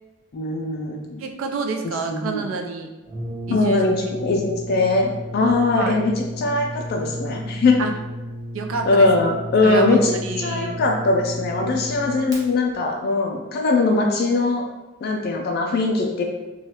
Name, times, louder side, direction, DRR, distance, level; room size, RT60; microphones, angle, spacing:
voice 1, 0.3-1.2 2.1-2.5 3.5-7.8 8.9-14.7 15.0-16.2, left 3 dB, 50° left, 1 dB, 0.3 m, -21 dB
voice 2, 1.2-2.9 3.5-3.8 5.8-6.0 7.8-7.9 8.5-9.1 9.6-10.8, right 4 dB, 75° right, 4 dB, 0.4 m, -28 dB
Brass instrument, 3.1-12.4, equal, 20° right, 0.9 m, -33 dB
3.1 x 2.3 x 2.8 m, 1.1 s
head